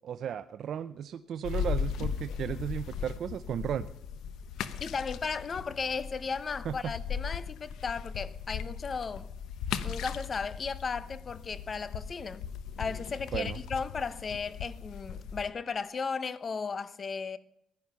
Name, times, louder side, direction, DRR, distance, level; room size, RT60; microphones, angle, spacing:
voice 1, 0.0-3.9 6.6-6.9 13.3-13.6, right 9 dB, 65° right, 0.5 m, -35 dB
sound 1, 1.4-15.5, left 7 dB, 80° left, 0.9 m, -38 dB
voice 2, 4.8-9.3 9.8-12.5 12.8-17.4, left 5 dB, 40° left, 0.9 m, -35 dB
16.0 x 11.0 x 5.7 m
cardioid pair, 90°, 0 cm